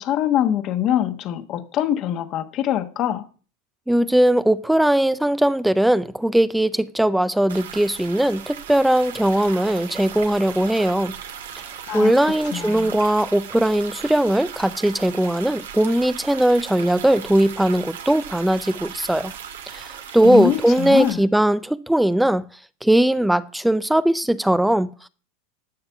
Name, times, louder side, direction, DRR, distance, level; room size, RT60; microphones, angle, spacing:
voice 1, 0.0-3.3 11.9-12.1 12.5-12.9 20.2-21.2, left 11 dB, 45° left, 1.2 m, -23 dB
voice 2, 3.9-11.1 11.9-19.3 19.7-19.9 20.1-22.5 22.8-25.1, right 1 dB, 5° right, 0.5 m, -19 dB
sound 1, 7.5-21.1, right 8 dB, 90° right, 1.8 m, -37 dB
11.5 x 6.6 x 7.1 m
hypercardioid pair, 115°, 0 cm